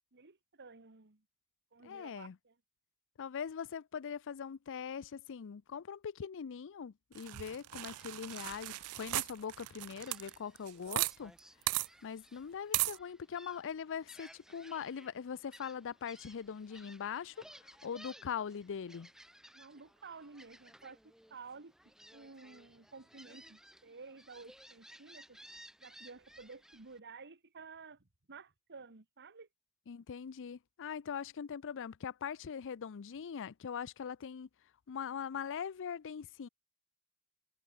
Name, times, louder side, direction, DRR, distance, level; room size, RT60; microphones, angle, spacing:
voice 1, 0.1-1.2 1.7-2.5 19.5-25.4 25.8-29.5, right 4 dB, 50° right, 1.7 m, -53 dB
voice 2, 1.8-2.4 3.2-11.3 12.0-19.1 29.9-34.5 34.9-36.5, left 7 dB, 60° left, 0.5 m, -42 dB
sound 1, 7.2-11.1 11.4-11.5 11.7-11.9 12.7-13.0, right 18 dB, 75° right, 0.4 m, -36 dB
Gull seagull, 7.9-27.0, right 1 dB, ahead, 1.4 m, -59 dB
head